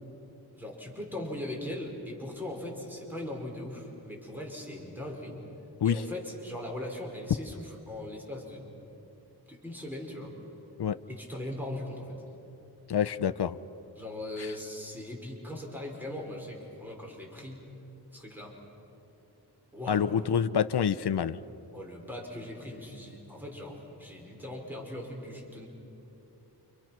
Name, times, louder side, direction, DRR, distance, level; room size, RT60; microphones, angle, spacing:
voice 1, 0.5-5.4 5.8-8.6 9.5-10.3 11.1-12.2 14.0-17.7 18.1-18.6 19.7-20.5 21.7-25.7, left 1 dB, 5° right, -1 dB, 5.3 m, -39 dB
voice 2, 12.9-13.6 14.4-14.5 19.9-21.4, left 8 dB, 70° left, 13 dB, 0.8 m, -27 dB
29.0 x 27.5 x 6.0 m, 2.9 s
wide cardioid pair, 80°, 41 cm